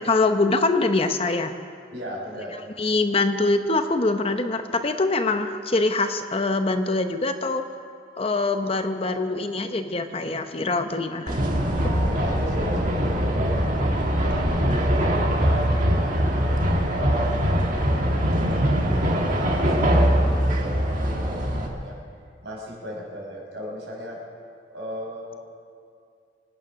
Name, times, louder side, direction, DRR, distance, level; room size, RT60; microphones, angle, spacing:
voice 1, 0.1-1.5 2.8-7.6 8.2-11.4, left 3 dB, 35° left, 7 dB, 0.8 m, -24 dB
voice 2, 1.9-2.6 11.6-14.8 15.4-16.6 16.9-21.5 21.7-22.0 22.4-24.2 24.7-25.4, equal, 75° right, -3 dB, 5.1 m, -36 dB
sound 1, 11.3-21.7, equal, 45° right, 1.8 m, -22 dB
25.5 x 9.5 x 5.9 m, 2.3 s
head